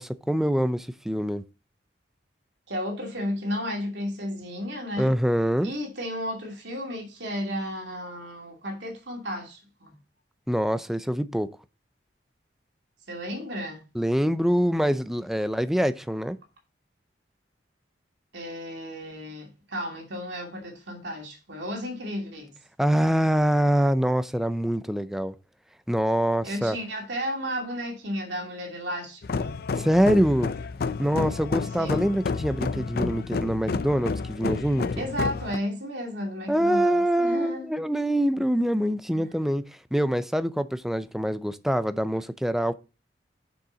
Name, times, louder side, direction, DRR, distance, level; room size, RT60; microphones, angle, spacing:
voice 1, 0.0-1.4 5.0-5.7 10.5-11.5 13.9-16.4 22.8-25.3 25.9-26.8 29.8-30.5 31.0-35.0 36.5-39.6 39.9-42.7, equal, ahead, 0.5 m, -24 dB
voice 2, 2.7-5.1 5.6-10.0 13.1-13.8 18.3-22.6 26.4-29.6 31.8-32.1 35.0-37.7 39.1-39.4, equal, 75° right, 2.6 m, -33 dB
sound 1, 29.2-35.6, left 4 dB, 55° left, 0.4 m, -30 dB
7.1 x 6.3 x 3.8 m
head